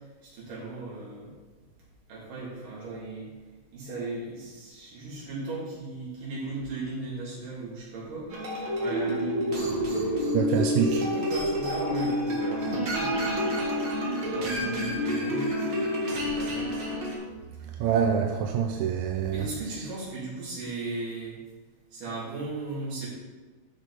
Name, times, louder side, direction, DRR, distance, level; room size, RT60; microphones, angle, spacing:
voice 1, 0.2-1.3 2.1-3.3 3.7-8.3 8.8-10.4 10.8-13.1 14.2-16.7 19.3-21.4 21.9-23.1, right 2 dB, 65° right, -7 dB, 4.3 m, -37 dB
sound 1, 8.3-17.2, equal, 45° right, 1.9 m, -28 dB
voice 2, 10.3-11.0 17.8-19.9, right 7 dB, 80° right, 3 dB, 2.2 m, -26 dB
12.5 x 5.2 x 4.1 m, 1.3 s
omnidirectional pair, 4.2 m